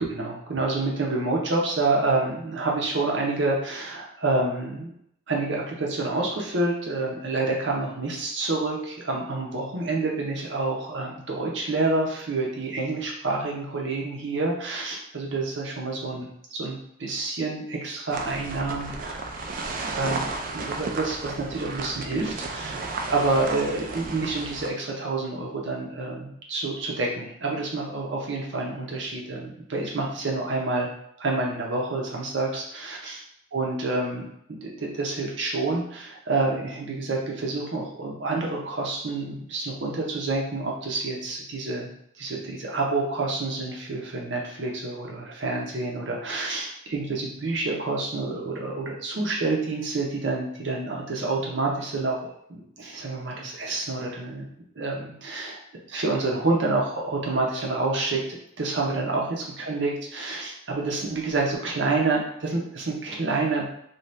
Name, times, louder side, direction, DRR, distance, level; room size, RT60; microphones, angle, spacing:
voice 1, 0.1-4.9 5.3-19.2 19.9-30.9 31.2-33.2 33.5-34.2 34.5-41.9 42.2-52.2 52.5-54.5 54.8-55.6 55.9-63.6, right 3 dB, 70° right, -1 dB, 0.7 m, -28 dB
sound 1, 18.1-24.7, right 3 dB, 45° right, 0.3 m, -33 dB
2.7 x 2.3 x 3.2 m, 0.73 s
head